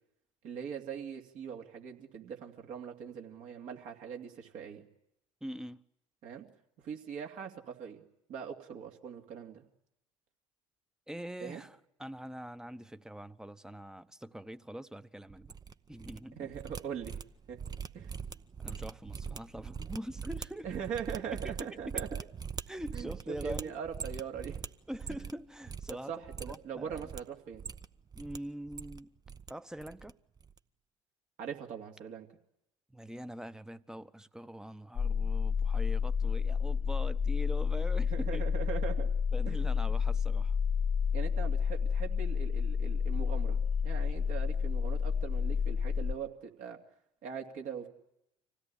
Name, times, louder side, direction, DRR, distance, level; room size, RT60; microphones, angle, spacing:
voice 1, 0.4-4.8 6.2-6.5 6.8-8.0 8.3-9.6 11.4-11.6 16.4-17.2 17.5-17.6 17.9-18.1 20.6-22.2 22.9-24.6 25.1-25.2 26.1-27.7 31.4-32.3 38.1-39.1 39.5-39.7 41.1-46.8 47.2-47.9, right 7 dB, 55° right, 2.8 m, -41 dB
voice 2, 5.4-5.8 11.1-15.5 15.9-16.5 18.6-20.7 21.4-21.5 21.9-22.0 22.7-23.7 24.9-26.1 26.4-27.0 28.1-29.1 29.5-30.2 32.9-38.4 39.3-40.6, equal, 5° right, 1.0 m, -43 dB
sound 1, 15.3-16.2 16.5-25.4 25.6-25.9 26.2-27.2 27.5-28.4 28.6-29.5 29.8-30.1 30.4-30.6, right 6 dB, 25° right, 0.8 m, -42 dB
sound 2, 35.0-46.1, left 6 dB, 35° left, 0.8 m, -30 dB
25.5 x 16.5 x 10.0 m
figure-of-eight pair, 55°, 15 cm